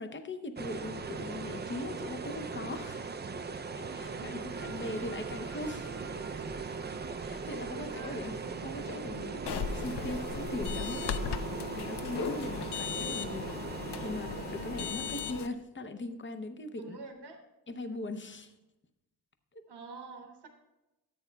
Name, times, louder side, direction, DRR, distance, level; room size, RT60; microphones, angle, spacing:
voice 1, 0.0-3.1 3.7-5.9 7.2-8.3 8.6-13.5 14.0-17.0 17.7-18.5 19.5-19.6, left 2 dB, 30° left, 8 dB, 0.6 m, -40 dB
sound 1, 0.6-15.6, right 4 dB, 30° right, 0.3 m, -40 dB
voice 2, 4.1-5.0 7.7-8.2 14.9-15.3 16.7-17.4 19.7-20.5, right 3 dB, 85° right, 4 dB, 1.1 m, -48 dB
sound 2, 4.5-15.3, right 5 dB, 50° right, 0.8 m, -46 dB
sound 3, 9.5-15.5, left 7 dB, 85° left, 0.5 m, -37 dB
14.5 x 8.2 x 2.2 m, 0.98 s
wide cardioid pair, 140°, 39 cm